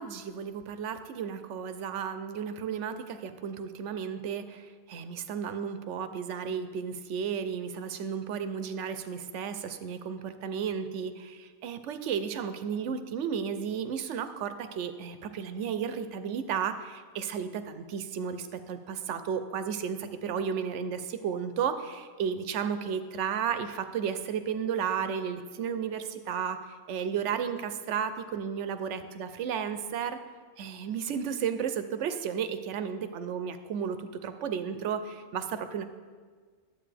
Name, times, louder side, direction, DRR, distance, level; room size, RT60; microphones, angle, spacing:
voice 1, 0.0-26.6 26.9-30.2 30.6-35.8, right 7 dB, 90° right, 10 dB, 1.0 m, -33 dB
12.0 x 8.0 x 3.3 m, 1.5 s
omnidirectional pair, 1.2 m